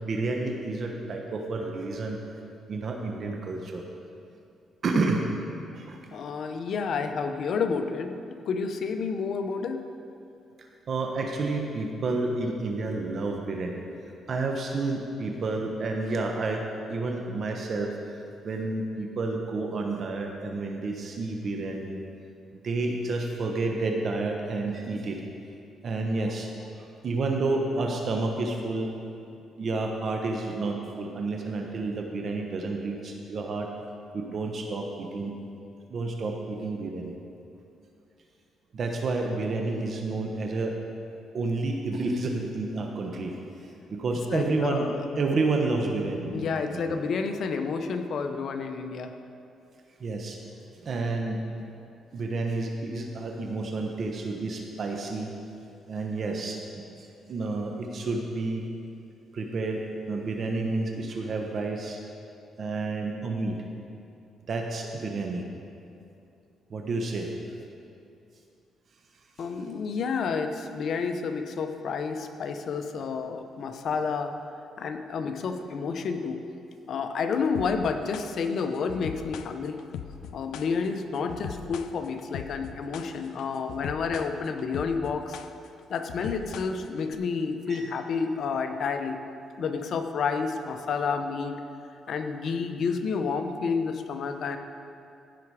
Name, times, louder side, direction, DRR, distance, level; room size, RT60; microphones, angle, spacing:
voice 1, 0.0-2.2 2.7-3.8 4.8-5.3 5.7-6.0 10.9-13.8 14.3-22.0 22.6-25.2 25.8-28.9 29.6-33.7 34.1-35.3 35.9-37.2 38.7-40.7 41.3-43.4 43.9-47.0 50.0-50.4 50.7-51.4 52.1-55.3 55.9-56.6 57.0-58.6 59.3-62.0 62.6-63.6 64.5-65.5 66.7-67.3 87.7-87.8, right 3 dB, 50° right, 2 dB, 1.0 m, -30 dB
voice 2, 6.1-9.8 44.3-45.0 46.3-49.1 69.4-74.3 74.8-76.4 76.9-79.8 80.3-85.4 85.9-89.2 89.6-91.6 92.1-94.6, left 5 dB, 60° left, 7 dB, 0.8 m, -30 dB
sound 1, 77.5-87.1, left 8 dB, 80° left, 0.4 m, -40 dB
15.5 x 6.0 x 4.8 m, 2.6 s
cardioid pair, 90°, 0 cm